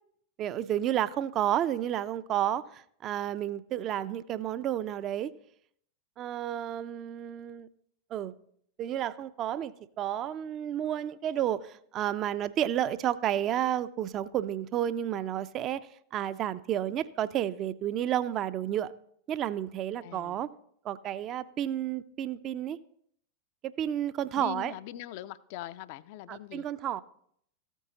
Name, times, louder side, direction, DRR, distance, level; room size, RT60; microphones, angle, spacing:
voice 1, 0.4-5.3 6.2-7.7 8.1-8.3 8.8-18.9 19.3-20.5 20.8-22.8 23.6-24.7 26.3-27.0, right 11 dB, 30° right, 16 dB, 0.4 m, -31 dB
voice 2, 20.0-20.4 24.4-26.7, left 13 dB, 50° left, 15 dB, 0.4 m, -41 dB
14.0 x 9.1 x 2.8 m, 0.67 s
figure-of-eight pair, 90°, 0 cm